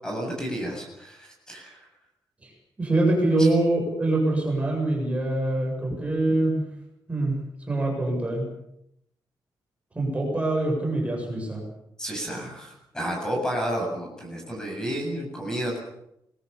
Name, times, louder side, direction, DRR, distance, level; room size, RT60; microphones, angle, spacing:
voice 1, 0.0-1.8 3.4-3.5 12.0-15.8, equal, 10° left, 0 dB, 7.8 m, -31 dB
voice 2, 2.8-6.6 7.1-8.5 9.9-11.6, right 2 dB, 15° right, 0 dB, 7.5 m, -24 dB
28.0 x 21.0 x 7.2 m, 0.78 s
wide cardioid pair, 180°, 8 cm